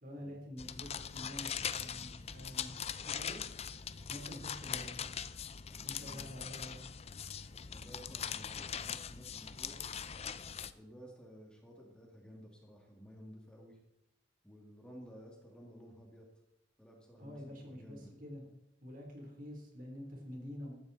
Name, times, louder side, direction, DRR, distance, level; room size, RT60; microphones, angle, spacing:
voice 1, 0.0-3.4 4.1-5.1 5.8-6.8 17.2-18.4 18.8-20.7, equal, 45° right, 1 dB, 3.7 m, -47 dB
sound 1, 0.6-10.7, left 8 dB, 35° left, 0.6 m, -41 dB
voice 2, 5.7-6.3 7.7-10.0 10.7-13.8 14.4-16.3 16.8-18.1, equal, 5° left, -1 dB, 2.4 m, -54 dB
15.0 x 14.0 x 4.2 m, 0.82 s
head